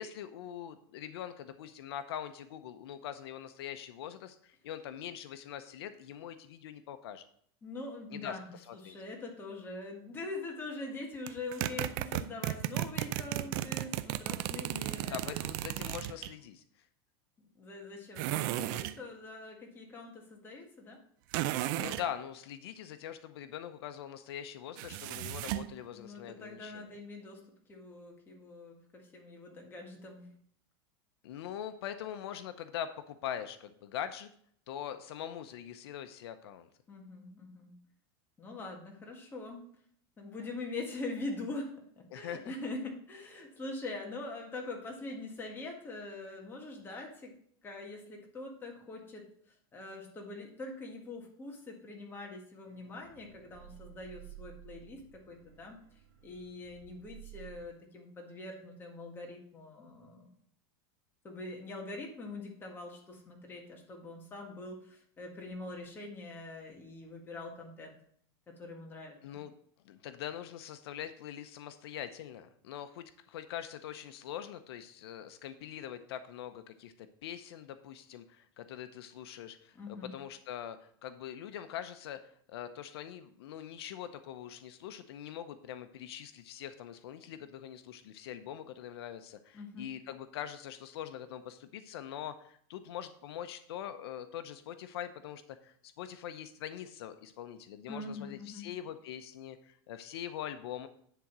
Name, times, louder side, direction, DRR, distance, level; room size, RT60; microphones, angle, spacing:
voice 1, 0.0-7.3 8.1-8.4 8.7-9.0 15.0-16.6 21.7-26.9 31.2-34.3 34.7-36.7 42.1-42.5 69.2-69.5 69.8-100.9, left 10 dB, 90° left, 10 dB, 0.7 m, -43 dB
voice 2, 7.6-15.4 17.5-21.0 25.9-27.4 27.7-30.3 36.9-37.7 38.4-39.6 40.2-47.3 47.6-49.2 49.7-55.8 56.2-60.3 61.2-68.0 68.6-69.2 79.7-80.1 89.5-89.9 97.9-98.7, left 2 dB, 15° left, 0 dB, 1.7 m, -43 dB
sound 1, 11.3-16.3 18.2-19.0 21.3-22.1 24.8-25.7, right 15 dB, 55° right, 0.5 m, -34 dB
sound 2, 52.6-57.6, right 13 dB, 85° right, 2.4 m, -53 dB
10.0 x 3.8 x 6.1 m, 0.63 s
supercardioid pair, 160°, 13 cm